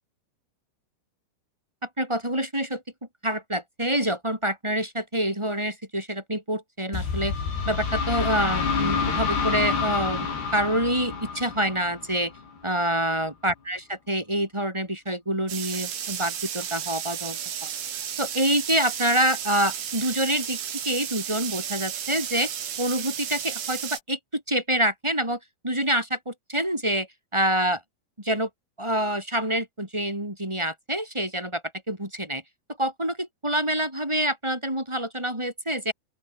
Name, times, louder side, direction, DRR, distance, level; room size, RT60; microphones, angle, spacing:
voice 1, 1.8-2.8 3.2-7.4 7.6-12.3 12.6-17.7 18.2-22.5 22.8-27.8 28.2-28.5 28.8-31.6 31.9-32.4 32.8-35.9, right 1 dB, 5° right, 6.2 m, -27 dB
sound 1, 6.9-12.6, left 5 dB, 70° left, 8.0 m, -28 dB
sound 2, 15.5-24.0, right 9 dB, 85° right, 5.4 m, -33 dB
open air
omnidirectional pair, 4.9 m